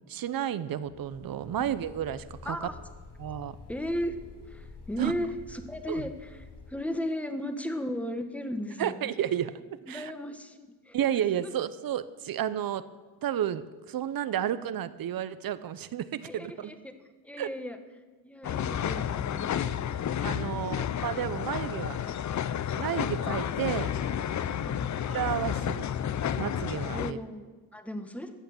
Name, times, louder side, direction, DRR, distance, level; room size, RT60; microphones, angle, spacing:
voice 1, 0.1-2.7 3.2-3.6 5.0-5.1 5.9-6.1 8.8-9.5 9.9-10.1 10.9-12.9 13.2-16.7 17.4-17.5 20.2-22.1 22.8-23.9 25.1-25.9 26.4-27.2, right 10 dB, 60° right, 15 dB, 0.8 m, -31 dB
sound 1, 0.8-6.7, left 3 dB, 80° left, 3.2 m, -48 dB
voice 2, 3.7-4.2 4.5-6.4 6.7-9.1 9.9-10.9 11.4-11.5 16.2-16.9 17.2-17.8 18.2-19.7 20.1-20.8 26.9-28.3, left 1 dB, 5° left, 7 dB, 1.2 m, -36 dB
sound 2, 18.4-27.1, left 9 dB, 45° left, 0.6 m, -31 dB
14.5 x 8.4 x 7.1 m, 1.3 s
cardioid pair, 100°, 41 cm